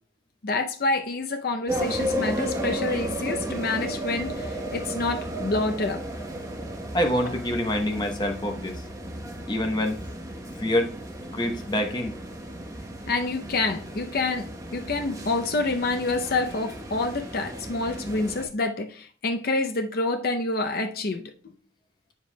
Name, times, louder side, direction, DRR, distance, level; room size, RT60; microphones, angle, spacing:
voice 1, 0.4-6.0 13.1-21.3, left 3 dB, 50° left, 0.6 m, -27 dB
sound 1, 1.7-18.5, equal, 15° right, 1.0 m, -34 dB
voice 2, 6.9-8.8 9.5-10.0 10.6-10.9 11.3-12.2, left 1 dB, 25° left, 0.9 m, -26 dB
8.5 x 7.4 x 2.2 m
head